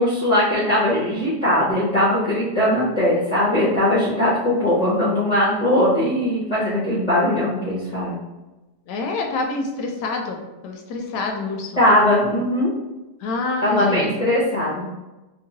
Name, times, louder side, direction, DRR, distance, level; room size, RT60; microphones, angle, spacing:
voice 1, 0.0-8.2 11.8-12.7 13.6-14.8, left 1 dB, 40° left, -9 dB, 0.6 m, -20 dB
voice 2, 8.9-10.4 10.6-11.7 13.2-14.1, left 3 dB, 80° left, 2 dB, 1.2 m, -26 dB
3.0 x 2.6 x 2.7 m, 1.1 s
omnidirectional pair, 1.8 m